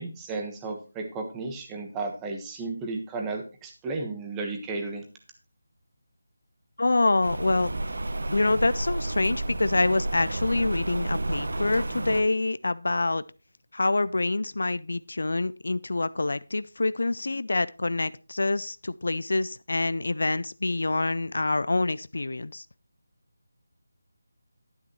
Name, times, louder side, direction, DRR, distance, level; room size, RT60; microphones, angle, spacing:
voice 1, 0.0-5.0, right 3 dB, 10° right, 3 dB, 1.3 m, -34 dB
voice 2, 6.8-7.7 8.3-13.2 13.7-22.7, left 2 dB, 75° left, 16 dB, 0.4 m, -26 dB
Rain, 7.2-12.2, right 2 dB, 75° right, 1.0 m, -31 dB
11.5 x 9.6 x 3.0 m, 0.32 s
figure-of-eight pair, 165°, 0 cm